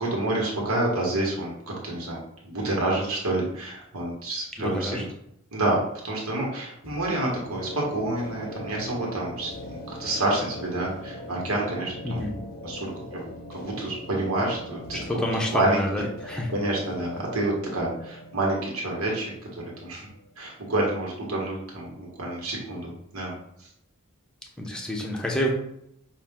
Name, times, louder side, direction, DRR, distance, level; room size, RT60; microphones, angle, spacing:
voice 1, 0.0-5.1 5.5-5.8 6.0-12.2 12.6-13.2 13.5-15.0 15.5-16.1 16.5-20.1 20.4-23.7, right 2 dB, 80° right, -2 dB, 1.4 m, -28 dB
voice 2, 4.6-5.0 12.0-12.4 14.9-16.5 24.6-25.5, equal, 5° left, -1 dB, 0.7 m, -28 dB
sound 1, 6.8-20.5, left 1 dB, 45° left, 0.6 m, -41 dB
5.7 x 2.5 x 3.6 m, 0.75 s
head